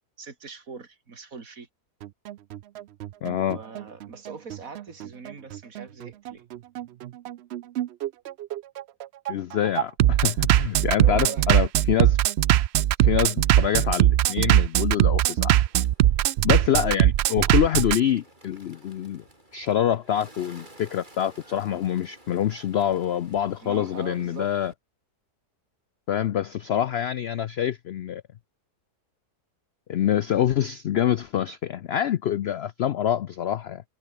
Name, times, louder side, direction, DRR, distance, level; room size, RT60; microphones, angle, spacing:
voice 1, 0.2-1.7 3.5-6.4 10.9-11.5 18.8-18.9 23.6-24.5, right 4 dB, 60° right, 2.8 m, -41 dB
Bass drum, 2.0-18.0, right 13 dB, 85° right, 0.5 m, -21 dB
voice 2, 3.2-3.6 9.3-12.2 13.0-15.6 16.4-19.2 19.5-24.7 26.1-28.2 29.9-33.8, left 10 dB, 70° left, 0.6 m, -26 dB
Bird, 15.3-24.7, right 1 dB, 30° right, 6.5 m, -53 dB
omnidirectional pair, 1.7 m